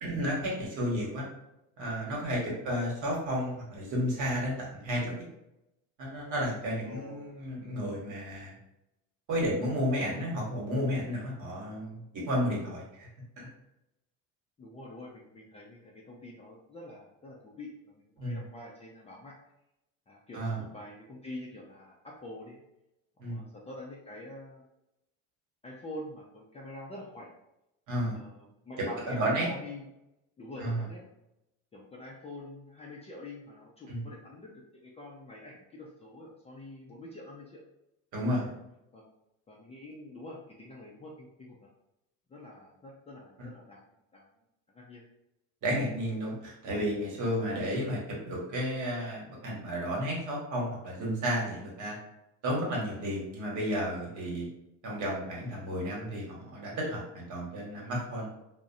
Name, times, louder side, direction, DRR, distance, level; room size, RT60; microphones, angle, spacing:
voice 1, 0.0-1.3 1.8-5.1 6.0-8.5 9.3-13.1 13.4-13.5 18.2-18.4 20.3-20.6 23.2-23.4 27.9-28.2 29.1-29.5 30.6-30.9 33.9-34.0 38.1-38.5 43.4-43.5 45.6-52.0 52.4-54.5 54.8-58.3, equal, 55° right, -3 dB, 1.2 m, -32 dB
voice 2, 6.8-7.4 14.6-19.3 20.1-22.6 23.3-24.6 25.6-27.3 28.1-29.9 30.4-31.0 31.7-37.6 38.9-39.0 39.5-41.7 42.3-43.8 44.1-44.3 44.7-45.0, left 1 dB, 20° left, -3 dB, 0.4 m, -46 dB
2.4 x 2.1 x 2.6 m, 0.87 s
supercardioid pair, 105°, 37 cm